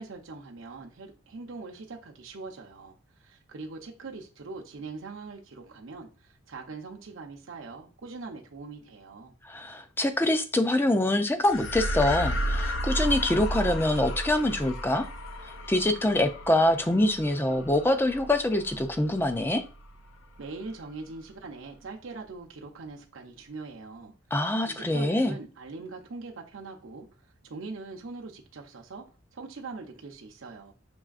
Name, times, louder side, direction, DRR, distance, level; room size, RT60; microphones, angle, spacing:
voice 1, 0.0-9.3 20.4-24.1 24.7-27.1 27.4-29.1 29.3-30.7, right 3 dB, 70° right, 0.6 m, -42 dB
voice 2, 9.5-15.1 15.7-19.6 24.3-25.4, left 1 dB, 10° left, 0.4 m, -25 dB
sound 1, 11.4-20.1, equal, 65° left, 0.5 m, -33 dB
6.1 x 3.2 x 2.4 m
head